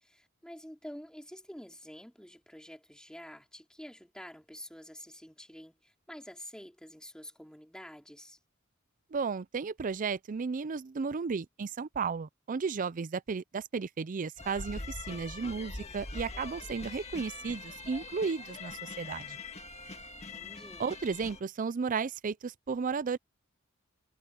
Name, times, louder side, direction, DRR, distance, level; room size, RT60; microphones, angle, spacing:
voice 1, 0.0-8.4 20.3-20.9, equal, 5° left, 3.7 m, -48 dB
voice 2, 9.1-19.4 20.8-23.2, right 5 dB, 40° right, 0.4 m, -34 dB
sound 1, 14.4-21.4, left 3 dB, 30° left, 2.1 m, -43 dB
head